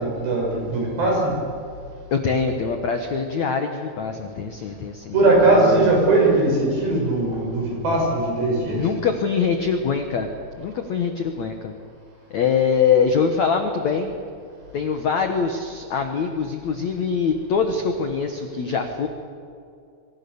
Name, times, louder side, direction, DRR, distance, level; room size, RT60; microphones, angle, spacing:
voice 1, 0.0-1.4 5.1-8.9, right 2 dB, 65° right, -1 dB, 8.8 m, -19 dB
voice 2, 2.1-5.2 5.4-5.9 8.7-10.3 10.6-11.7 12.3-14.2 14.7-19.1, left 6 dB, 75° left, 5 dB, 1.6 m, -23 dB
26.5 x 23.5 x 7.1 m, 2.4 s
omnidirectional pair, 5.4 m